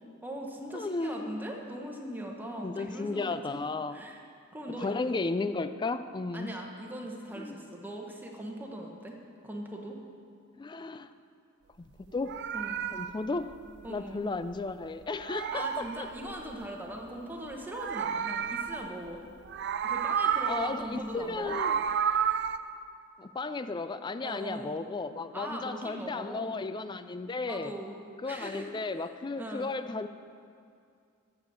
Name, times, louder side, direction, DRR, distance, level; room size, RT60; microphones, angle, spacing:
voice 1, 0.2-3.6 3.9-4.2 4.5-4.9 6.3-9.2 9.4-10.0 12.5-12.8 13.8-14.2 15.3-19.2 19.8-21.5 24.2-24.8 25.3-26.6 27.5-28.0 28.2-29.1 29.4-29.7, right 1 dB, 10° right, 0 dB, 1.0 m, -40 dB
voice 2, 0.7-1.4 2.6-4.0 4.8-6.5 7.4-7.6 10.6-11.1 12.1-12.4 12.9-13.5 13.9-16.1 20.5-21.8 23.2-27.7 28.2-30.1, left 3 dB, 20° left, 12 dB, 0.3 m, -34 dB
Meow, 12.0-14.7 15.0-16.7 17.5-19.1 19.4-20.9 21.2-22.6, right 8 dB, 55° right, 0.4 m, -32 dB
9.7 x 7.0 x 7.6 m, 2.4 s
head